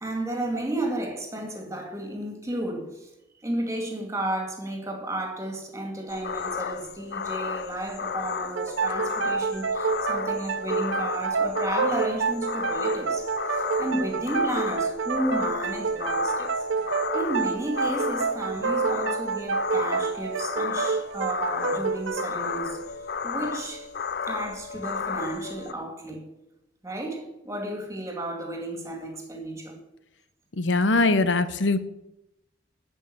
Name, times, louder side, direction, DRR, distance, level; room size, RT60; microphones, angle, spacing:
voice 1, 0.0-3.1 3.4-16.6 17.1-22.8 23.2-23.9 24.3-26.3 26.8-29.8, right 1 dB, 15° right, 2.1 m, -32 dB
sound 1, 6.1-25.7, left 6 dB, 55° left, 0.4 m, -33 dB
sound 2, 8.5-23.9, right 5 dB, 85° right, 0.6 m, -28 dB
voice 2, 30.6-31.8, left 3 dB, 80° left, 0.9 m, -21 dB
12.0 x 5.5 x 8.7 m
head